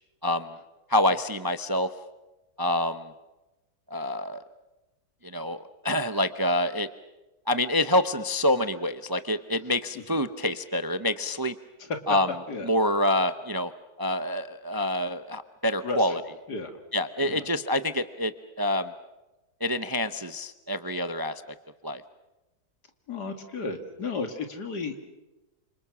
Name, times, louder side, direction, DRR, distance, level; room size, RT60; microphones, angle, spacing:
voice 1, 0.2-0.5 0.9-1.9 2.6-3.1 3.9-4.4 5.2-6.9 7.5-11.5 12.1-12.3 12.6-13.7 14.0-16.2 16.9-18.9 19.6-21.4 21.8-22.0, left 1 dB, 25° right, 11 dB, 0.5 m, -27 dB
voice 2, 15.8-16.7 17.2-17.4 23.1-25.0, left 4 dB, 85° left, 6 dB, 2.9 m, -34 dB
29.0 x 26.5 x 6.2 m, 1.0 s
omnidirectional pair, 1.7 m